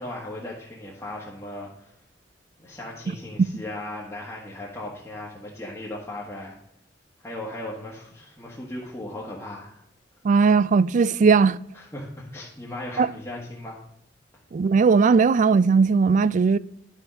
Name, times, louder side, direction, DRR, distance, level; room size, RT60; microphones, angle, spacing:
voice 1, 0.0-1.9 2.6-6.6 7.2-9.8 11.7-13.8, left 1 dB, 15° left, 1.6 m, -37 dB
voice 2, 10.2-11.6 13.0-13.1 14.5-16.6, right 5 dB, 45° right, 0.3 m, -18 dB
10.5 x 4.9 x 6.3 m
head